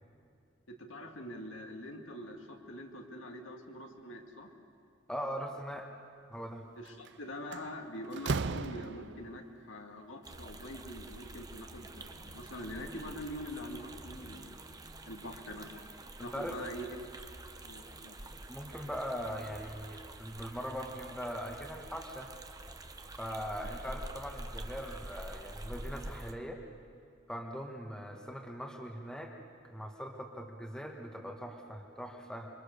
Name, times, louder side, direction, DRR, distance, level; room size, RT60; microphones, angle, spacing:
voice 1, 0.7-4.5 6.8-14.6 15.0-15.9 16.2-17.0 17.6-18.1, left 1 dB, 75° left, 2 dB, 2.4 m, -44 dB
voice 2, 5.1-5.9 6.3-6.6 16.2-16.6 18.5-22.3 23.2-26.6 27.3-29.3 29.6-32.5, equal, 5° left, 1 dB, 1.7 m, -41 dB
Slam, 6.9-7.1 7.5-9.4, right 4 dB, 60° right, 0.6 m, -36 dB
sound 1, 10.2-26.3, right 2 dB, 20° right, 1.1 m, -47 dB
27.0 x 24.0 x 6.8 m, 2.3 s
head